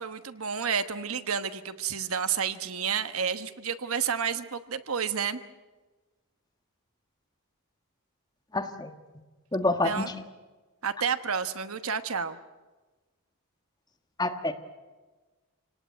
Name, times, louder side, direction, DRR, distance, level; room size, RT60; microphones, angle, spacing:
voice 1, 0.0-5.4 9.8-10.1 10.8-12.4, right 7 dB, 75° right, 11 dB, 1.2 m, -30 dB
voice 2, 8.5-8.9 9.5-10.1 14.2-14.5, left 2 dB, 20° left, 6 dB, 1.5 m, -27 dB
27.0 x 18.5 x 9.3 m, 1.2 s
head